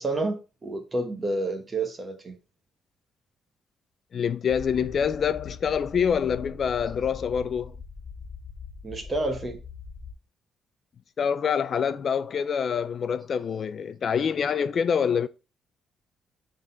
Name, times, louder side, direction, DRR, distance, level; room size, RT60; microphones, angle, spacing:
voice 1, 0.0-2.3 8.8-9.6, right 2 dB, 20° right, 1.0 m, -29 dB
voice 2, 4.1-7.7 11.2-15.3, left 7 dB, 40° left, 0.3 m, -26 dB
sound 1, 4.5-10.1, left 5 dB, ahead, 2.4 m, -42 dB
6.2 x 3.8 x 4.3 m
cardioid pair, 165°, 0 cm